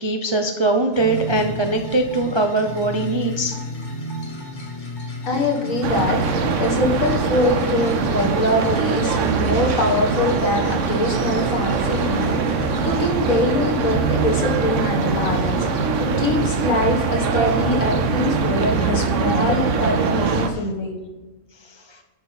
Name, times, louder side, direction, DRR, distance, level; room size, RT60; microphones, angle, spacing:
voice 1, 0.0-3.6 21.9-22.0, right 2 dB, 35° right, 3 dB, 0.4 m, -21 dB
sound 1, 0.9-13.2, equal, 35° left, 1.4 m, -43 dB
sound 2, 1.0-19.0, right 2 dB, 15° left, 2.3 m, -32 dB
voice 2, 5.3-20.9, left 1 dB, 65° left, 1 dB, 2.1 m, -23 dB
sound 3, 5.8-20.5, right 5 dB, 60° right, 1.0 m, -22 dB
10.5 x 6.0 x 4.1 m, 1.2 s
omnidirectional pair, 1.5 m